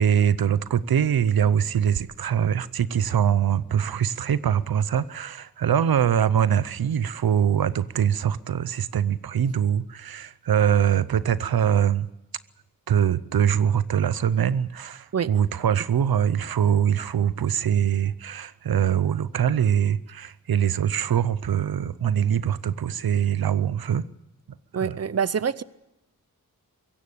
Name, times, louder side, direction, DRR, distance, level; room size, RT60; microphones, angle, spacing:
voice 1, 0.0-12.1 12.9-24.1 24.8-25.0, right 9 dB, 85° right, 0.7 m, -23 dB
voice 2, 24.7-25.6, right 7 dB, 45° right, 0.7 m, -25 dB
22.5 x 17.0 x 8.6 m
wide cardioid pair, 75°, 35 cm